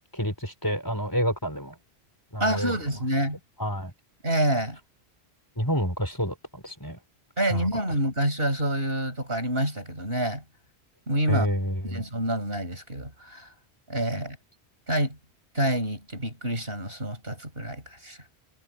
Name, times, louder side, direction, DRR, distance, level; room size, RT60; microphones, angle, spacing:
voice 1, 0.1-1.8 2.3-2.7 3.6-3.9 5.6-7.0 7.5-7.7 11.3-12.0, equal, 20° left, 5.2 m, -28 dB
voice 2, 2.4-3.4 4.2-4.8 7.4-10.4 11.1-11.5 11.9-13.5 13.9-14.4 14.9-15.2 15.5-18.2, right 1 dB, 60° right, 7.5 m, -27 dB
omnidirectional pair, 1.1 m